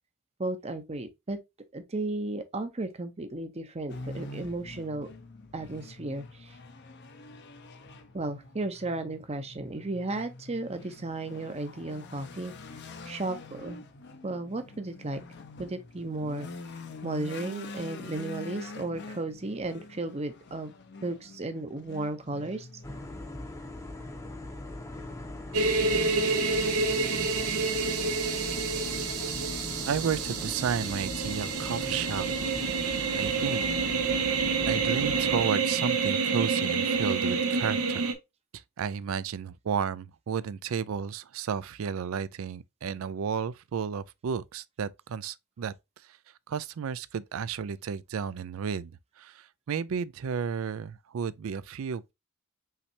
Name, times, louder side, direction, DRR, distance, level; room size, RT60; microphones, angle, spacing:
voice 1, 0.4-1.4 1.7-5.1 5.5-6.5 8.1-12.5 13.1-13.8 14.2-15.2 15.6-16.5 17.0-20.7 21.0-22.7, right 2 dB, 30° right, 0.7 m, -34 dB
sound 1, 3.9-23.2, left 3 dB, 50° left, 0.7 m, -45 dB
sound 2, 22.8-35.5, left 1 dB, 15° left, 0.7 m, -40 dB
sound 3, 25.5-38.1, right 4 dB, 85° right, 0.9 m, -28 dB
voice 2, 29.9-32.3 33.1-33.7 34.7-38.0 38.5-45.7 46.5-52.1, right 7 dB, 65° right, 0.4 m, -32 dB
5.7 x 3.2 x 2.7 m
head